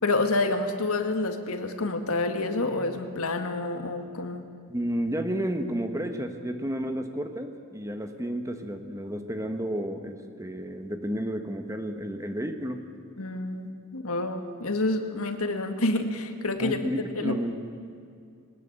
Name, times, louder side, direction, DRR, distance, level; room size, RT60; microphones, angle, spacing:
voice 1, 0.0-4.4 13.2-16.8 17.2-17.4, left 2 dB, 75° left, 6 dB, 1.9 m, -28 dB
voice 2, 4.7-12.8 16.6-17.6, equal, 15° right, 6 dB, 1.3 m, -31 dB
20.5 x 19.5 x 8.9 m, 2.3 s
head